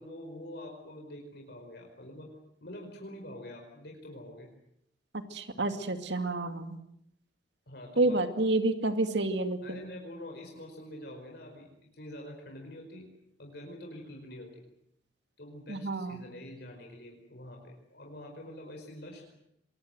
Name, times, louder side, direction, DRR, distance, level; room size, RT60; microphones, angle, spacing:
voice 1, 0.0-2.3 2.6-4.5 7.7-8.2 9.6-13.1 13.4-14.6 15.4-19.3, left 1 dB, 60° left, 1 dB, 5.0 m, -46 dB
voice 2, 5.3-6.8 8.0-9.8 15.7-16.2, right 2 dB, 65° right, 8 dB, 2.4 m, -29 dB
27.5 x 22.0 x 7.9 m, 0.77 s
head